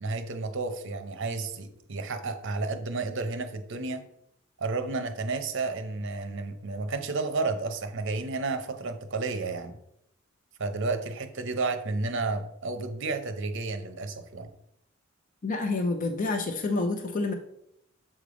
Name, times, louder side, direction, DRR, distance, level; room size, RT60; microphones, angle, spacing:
voice 1, 0.0-4.0 4.6-9.8 10.6-14.5, right 3 dB, 60° right, 9 dB, 0.7 m, -31 dB
voice 2, 15.4-17.3, left 3 dB, 40° left, 5 dB, 0.5 m, -28 dB
7.3 x 3.3 x 5.0 m, 0.77 s
head